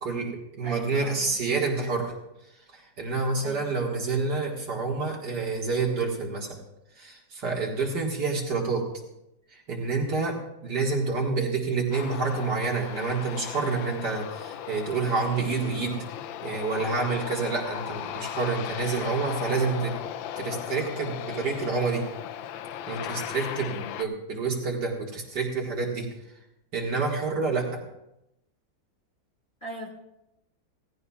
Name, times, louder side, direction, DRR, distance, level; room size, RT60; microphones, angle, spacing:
voice 1, 0.0-2.1 2.7-6.6 7.0-8.9 9.5-16.0 16.4-20.0 20.4-22.0 22.9-26.1 26.7-27.8, right 4 dB, 60° right, -1 dB, 2.4 m, -28 dB
voice 2, 0.6-1.3 3.4-3.7 29.6-29.9, equal, 25° left, -2 dB, 2.5 m, -40 dB
Aircraft, 11.9-24.0, left 10 dB, 80° left, 1.4 m, -37 dB
17.0 x 15.5 x 2.4 m, 0.87 s
omnidirectional pair, 2.1 m